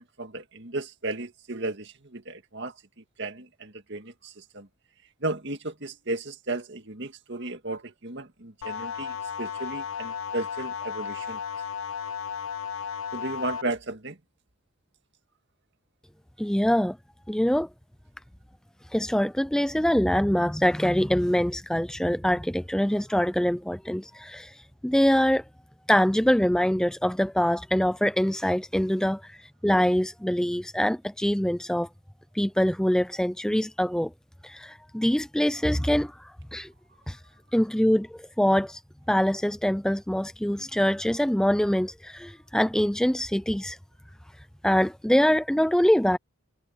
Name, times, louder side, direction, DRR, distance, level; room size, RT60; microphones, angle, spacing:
voice 1, 0.0-2.7 3.2-4.7 5.2-11.4 13.1-14.2, right 2 dB, 55° right, 2.0 m, -34 dB
sound 1, 8.6-13.6, left 7 dB, 80° left, 0.7 m, -34 dB
voice 2, 16.4-17.0 17.3-17.7 18.9-25.4 25.9-29.4 29.6-31.9 32.3-34.1 34.4-36.7 37.1-37.2 37.5-38.8 39.1-43.8 44.6-46.2, equal, 5° left, 0.4 m, -24 dB
head